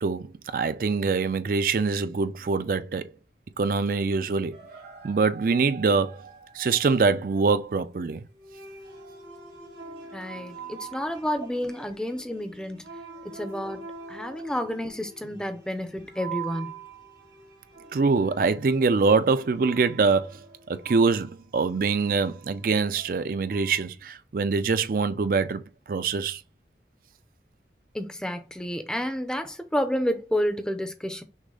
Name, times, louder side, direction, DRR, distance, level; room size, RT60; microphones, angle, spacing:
voice 1, 0.0-3.1 3.6-4.6 5.0-6.2 6.5-8.2 17.9-20.4 20.7-26.4, right 4 dB, 50° right, 0.4 m, -24 dB
sound 1, 4.5-7.1 8.3-23.8, right 5 dB, 80° right, 2.2 m, -44 dB
voice 2, 10.1-13.0 13.2-16.7 27.9-31.2, equal, 5° left, 0.5 m, -30 dB
6.1 x 2.1 x 3.8 m
head